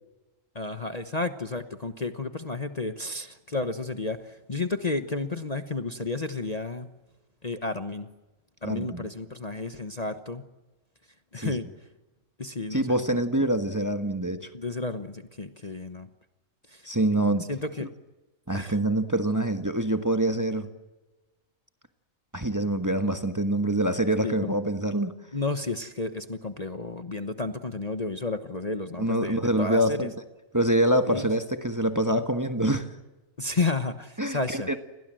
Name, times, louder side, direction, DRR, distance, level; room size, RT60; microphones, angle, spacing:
voice 1, 0.5-6.9 7.4-8.1 8.6-10.4 11.3-11.7 12.4-13.0 14.5-16.1 16.7-16.8 17.5-17.9 18.5-18.8 24.2-24.5 25.3-30.1 31.1-31.3 33.4-34.7, left 3 dB, 30° left, 9 dB, 1.2 m, -32 dB
voice 2, 8.6-9.0 11.4-11.5 12.7-14.5 16.9-17.5 17.8-17.9 18.5-20.7 22.3-25.1 29.0-30.1 30.5-32.9 34.2-34.8, right 1 dB, 15° right, 7 dB, 1.4 m, -25 dB
30.0 x 22.0 x 7.7 m, 1.1 s
omnidirectional pair, 1.4 m